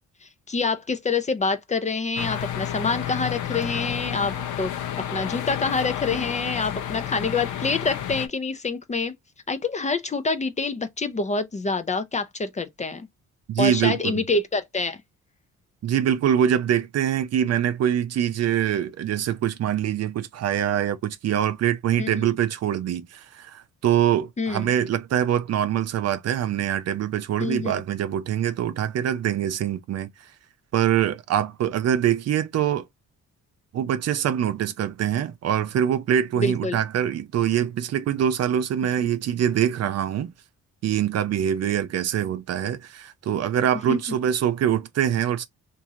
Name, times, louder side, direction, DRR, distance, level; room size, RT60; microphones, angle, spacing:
voice 1, 0.5-4.7 5.1-9.1 9.5-13.1 13.6-15.0 22.0-22.1 24.4-24.7 27.4-27.7 36.4-36.8 43.9-44.0, left 4 dB, 25° left, 0.5 m, -26 dB
sound 1, 2.2-8.3, left 10 dB, 75° left, 0.7 m, -31 dB
voice 2, 13.5-14.2 15.8-30.1 30.7-32.9 33.7-40.3 40.8-45.5, right 10 dB, 55° right, 0.6 m, -24 dB
2.9 x 2.6 x 3.6 m
cardioid pair, 90°, 30 cm